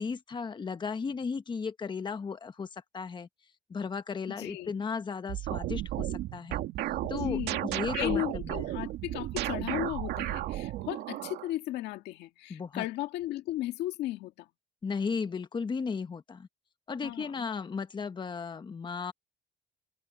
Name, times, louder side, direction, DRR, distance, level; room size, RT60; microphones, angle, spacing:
voice 1, 0.0-3.3 3.7-6.6 7.1-8.7 12.5-12.9 14.8-16.5 16.9-19.1, left 5 dB, 25° left, 1.2 m, -35 dB
voice 2, 4.3-4.8 7.0-14.3 17.0-17.5, left 15 dB, 85° left, 1.9 m, -35 dB
sound 1, 5.3-11.5, right 14 dB, 80° right, 2.1 m, -34 dB
cardioid pair, 110°, 17 cm